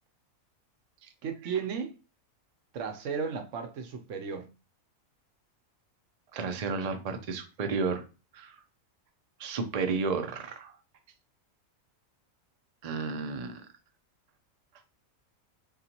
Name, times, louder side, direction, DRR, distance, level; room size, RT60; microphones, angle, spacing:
voice 1, 1.2-2.0 2.7-4.5, right 6 dB, 70° right, 0.9 m, -34 dB
voice 2, 6.3-8.0 8.3-8.6 9.4-10.7 12.8-13.6, right 4 dB, 50° right, 0.4 m, -32 dB
3.9 x 3.7 x 2.9 m
omnidirectional pair, 1.4 m